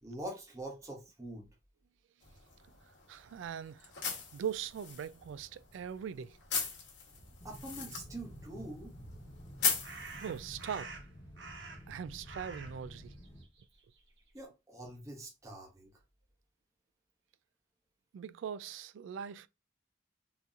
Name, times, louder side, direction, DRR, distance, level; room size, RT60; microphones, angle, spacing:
voice 1, 0.0-1.5 7.4-8.9 14.3-16.0, right 1 dB, 15° right, 0.9 m, -45 dB
sound 1, 2.2-10.8, left 6 dB, 65° left, 1.2 m, -40 dB
voice 2, 3.1-3.9 4.3-6.4 10.2-10.9 11.9-13.1 18.1-19.5, right 8 dB, 85° right, 0.3 m, -41 dB
sound 2, 7.4-13.4, equal, 25° left, 1.1 m, -51 dB
sound 3, 9.8-12.0 12.2-14.4, right 3 dB, 65° right, 1.0 m, -48 dB
3.9 x 2.8 x 2.5 m
head